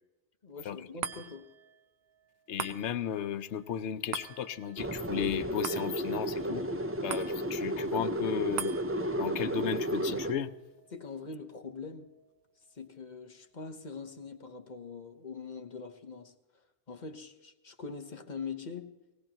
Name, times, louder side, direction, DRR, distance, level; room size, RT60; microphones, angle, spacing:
voice 1, 0.4-1.5 10.9-12.1 12.7-16.4 16.9-18.9, left 5 dB, 45° left, 1.1 m, -43 dB
clock chime, 1.0-13.6 14.0-14.1, right 8 dB, 70° right, 0.9 m, -45 dB
voice 2, 2.5-6.6 7.0-8.8 9.2-10.5, left 8 dB, 85° left, 1.0 m, -34 dB
sound 1, 4.8-10.3, right 1 dB, 15° right, 0.5 m, -33 dB
19.0 x 18.5 x 3.0 m
omnidirectional pair, 1.1 m